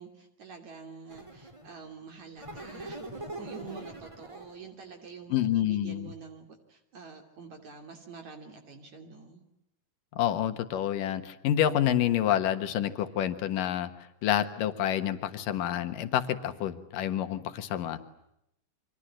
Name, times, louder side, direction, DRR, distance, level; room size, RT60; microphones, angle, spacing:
voice 1, 0.0-9.4, right 5 dB, 60° right, 4 dB, 4.2 m, -47 dB
sound 1, 1.1-1.8 2.4-4.6, right 2 dB, 10° right, 2.2 m, -42 dB
voice 2, 5.3-6.1 10.1-13.9 14.2-18.0, left 11 dB, 85° left, 9 dB, 3.1 m, -28 dB
30.0 x 25.5 x 7.6 m, 0.82 s
omnidirectional pair, 3.7 m